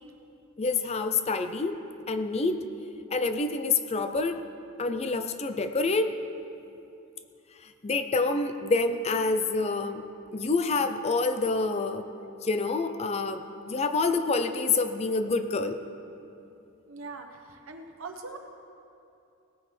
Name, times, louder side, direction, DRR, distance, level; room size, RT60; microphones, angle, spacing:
voice 1, 0.6-1.8 2.1-2.7 3.1-4.4 4.8-6.2 7.6-10.0 10.3-12.1 12.4-15.8, left 3 dB, 30° left, 9 dB, 0.4 m, -27 dB
voice 2, 16.9-18.4, right 3 dB, 70° right, 4 dB, 1.0 m, -42 dB
18.0 x 9.4 x 3.3 m, 2.7 s
head